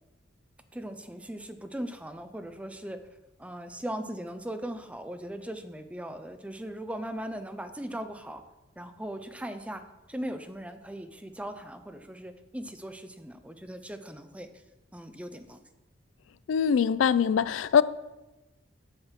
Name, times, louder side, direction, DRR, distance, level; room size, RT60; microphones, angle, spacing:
voice 1, 0.7-3.0 3.4-8.4 8.8-9.8 10.1-14.5 14.9-15.6, right 1 dB, 5° right, 9 dB, 0.5 m, -39 dB
voice 2, 16.5-17.8, left 7 dB, 85° left, 17 dB, 0.3 m, -23 dB
7.9 x 6.3 x 5.7 m, 1.0 s
head